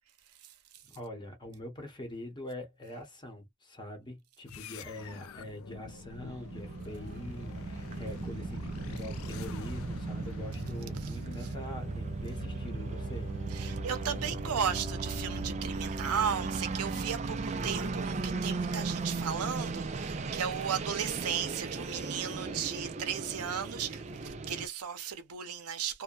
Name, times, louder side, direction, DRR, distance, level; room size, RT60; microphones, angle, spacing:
voice 1, 0.8-13.3 17.5-17.8, left 1 dB, 20° left, 0.8 m, -44 dB
sound 1, 4.5-17.1, left 5 dB, 70° left, 0.4 m, -47 dB
sound 2, 5.9-24.7, right 3 dB, 30° right, 0.3 m, -37 dB
voice 2, 13.5-26.0, right 8 dB, 90° right, 0.7 m, -35 dB
2.7 x 2.1 x 2.3 m
head